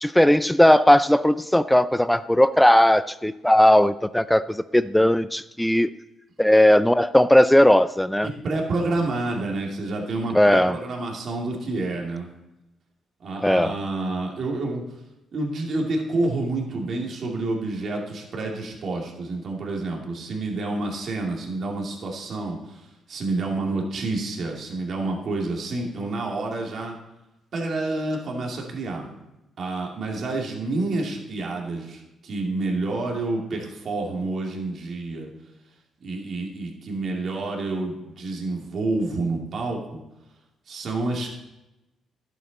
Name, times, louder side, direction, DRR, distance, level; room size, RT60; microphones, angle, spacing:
voice 1, 0.0-5.9 6.4-8.3 10.3-10.8 13.4-13.8, left 1 dB, 5° left, 14 dB, 0.3 m, -17 dB
voice 2, 8.2-12.3 13.2-14.8 15.3-22.8 23.1-26.9 27.5-29.1 29.6-35.3 36.0-40.0 40.7-41.3, right 2 dB, 55° right, 0 dB, 2.5 m, -28 dB
11.5 x 8.0 x 4.1 m, 0.97 s
cardioid pair, 90°, 0 cm